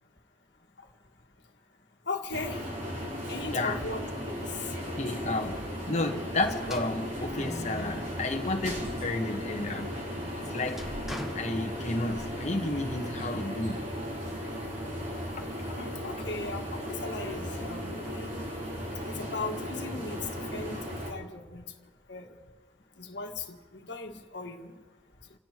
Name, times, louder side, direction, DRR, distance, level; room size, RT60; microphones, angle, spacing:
voice 1, 2.1-2.7 3.3-4.6 15.8-18.3 19.1-20.8 21.1-21.6 22.1-22.4 23.0-24.7, left 3 dB, 65° left, 1.7 m, -38 dB
sound 1, 2.3-21.1, equal, 45° right, 3.7 m, -36 dB
voice 2, 4.9-5.6 5.9-10.0 10.5-10.8 11.3-13.9 15.7-15.8, left 2 dB, 35° left, 1.3 m, -31 dB
sound 2, 6.6-9.0 9.5-12.3, equal, ahead, 1.2 m, -44 dB
28.5 x 16.5 x 3.0 m
head